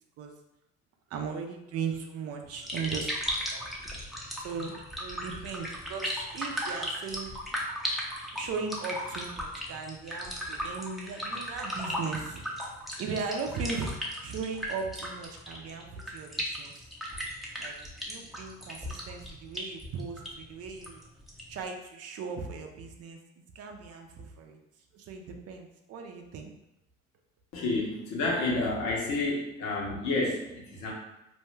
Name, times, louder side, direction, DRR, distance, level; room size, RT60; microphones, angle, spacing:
voice 1, 1.1-3.2 3.5-3.8 4.4-7.7 8.3-12.7 13.0-14.0 14.2-16.7 17.6-17.8 18.0-21.0 21.5-24.6 24.9-26.5, right 5 dB, 55° right, 4 dB, 0.6 m, -38 dB
sound 1, 2.4-21.6, equal, ahead, 0.7 m, -37 dB
voice 2, 27.5-30.9, left 2 dB, 65° left, -3 dB, 1.1 m, -30 dB
2.7 x 2.1 x 3.2 m, 0.88 s
supercardioid pair, 70°, 30 cm